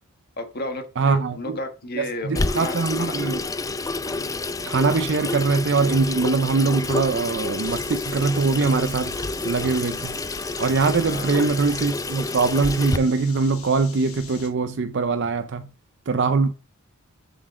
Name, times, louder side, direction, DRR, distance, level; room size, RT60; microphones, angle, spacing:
voice 1, 0.4-3.1 4.0-4.3 11.0-11.4, left 2 dB, 45° left, 1.5 m, -33 dB
voice 2, 1.0-1.6 2.0-3.4 4.7-10.2 10.6-15.7 16.1-16.5, right 4 dB, 55° right, 0.5 m, -22 dB
Water tap faucet / Sink (filling or washing), 2.3-13.0, left 3 dB, 15° left, 0.5 m, -29 dB
sound 1, 7.6-14.5, left 6 dB, 85° left, 1.8 m, -43 dB
7.3 x 7.0 x 3.7 m
head